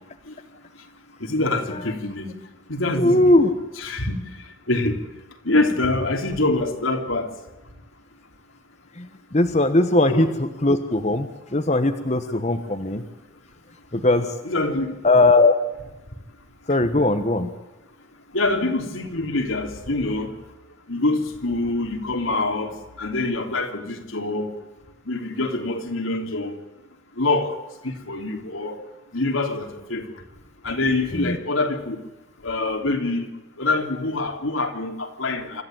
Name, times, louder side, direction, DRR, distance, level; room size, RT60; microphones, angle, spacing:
voice 1, 1.2-2.3 2.7-3.2 3.8-4.1 4.7-5.0 5.4-7.3 10.1-10.3 14.4-14.9 18.3-20.3 20.9-22.7 23.0-24.5 25.1-26.6 27.2-27.5 27.8-28.7 29.1-30.0 30.6-32.0 32.4-33.3 33.6-35.6, left 2 dB, 80° left, 4 dB, 3.2 m, -25 dB
voice 2, 3.0-3.5 9.0-9.1 9.3-13.0 13.9-14.3 15.0-15.5 16.7-17.5 31.2-31.4, left 2 dB, 35° left, 7 dB, 1.2 m, -19 dB
26.0 x 14.0 x 9.0 m, 1.1 s
head